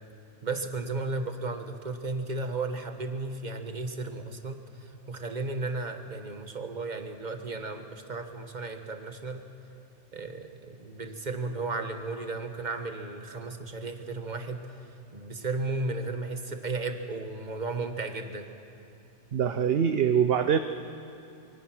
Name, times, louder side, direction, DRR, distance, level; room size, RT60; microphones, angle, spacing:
voice 1, 0.4-9.5 10.1-14.7 15.1-18.5, right 3 dB, 40° right, 6 dB, 1.5 m, -34 dB
voice 2, 19.3-20.6, right 8 dB, 60° right, 8 dB, 0.9 m, -23 dB
25.5 x 23.0 x 6.2 m, 2.8 s
omnidirectional pair, 1.2 m